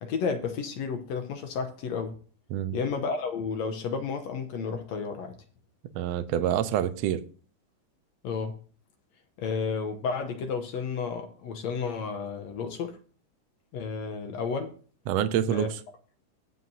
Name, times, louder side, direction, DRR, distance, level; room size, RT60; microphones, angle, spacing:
voice 1, 0.0-2.2 2.7-5.4 8.2-8.6 9.4-13.0 13.7-14.7 15.5-15.7, left 5 dB, 70° left, 1.9 m, -32 dB
voice 2, 5.9-7.2 15.1-15.7, right 10 dB, 70° right, 1.7 m, -26 dB
21.5 x 7.5 x 2.7 m
omnidirectional pair, 3.8 m